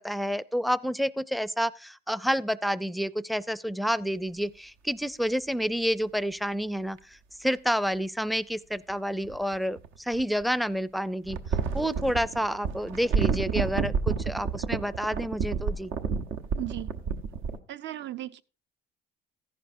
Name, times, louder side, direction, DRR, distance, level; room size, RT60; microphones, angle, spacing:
voice 1, 0.0-7.0 7.4-9.8 10.1-11.4 11.7-15.9, equal, ahead, 0.4 m, -29 dB
sound 1, 7.0-7.1 9.2-10.4 11.2-17.6, right 6 dB, 80° right, 1.0 m, -30 dB
voice 2, 16.5-16.9 17.7-18.4, right 14 dB, 65° right, 0.7 m, -36 dB
14.5 x 11.0 x 2.6 m
cardioid pair, 100°, 20 cm